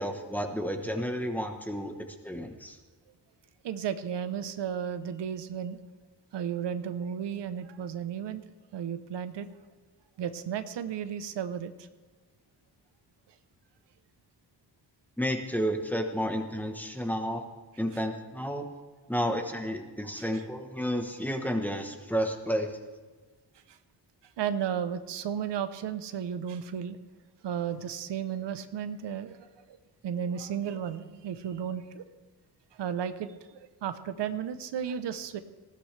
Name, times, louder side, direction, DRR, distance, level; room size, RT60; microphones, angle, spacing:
voice 1, 0.0-1.9 2.2-2.8 15.2-17.5 17.8-18.7 19.1-22.7, equal, 5° left, 4 dB, 1.1 m, -31 dB
voice 2, 3.6-5.8 6.3-8.4 8.7-9.5 10.2-11.9 17.9-18.0 20.0-20.5 23.7-23.8 24.4-27.0 27.4-29.8 30.0-32.0 32.7-35.4, right 8 dB, 85° right, 11 dB, 0.9 m, -34 dB
19.5 x 15.5 x 3.3 m, 1.3 s
wide cardioid pair, 180°, 41 cm